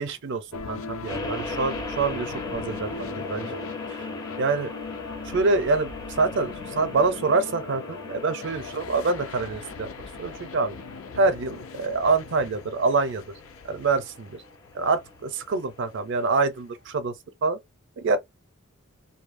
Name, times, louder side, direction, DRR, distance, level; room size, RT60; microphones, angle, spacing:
voice 1, 0.0-3.6 3.9-4.1 4.4-4.7 5.2-9.9 10.2-10.8 11.1-13.2 13.6-14.4 14.7-17.2 17.4-17.6 18.0-18.2, right 3 dB, 60° right, 0.5 m, -26 dB
sound 1, 0.5-16.9, left 4 dB, 70° left, 0.4 m, -39 dB
sound 2, 1.1-16.4, left 2 dB, 20° left, 0.4 m, -40 dB
2.6 x 2.2 x 2.5 m
head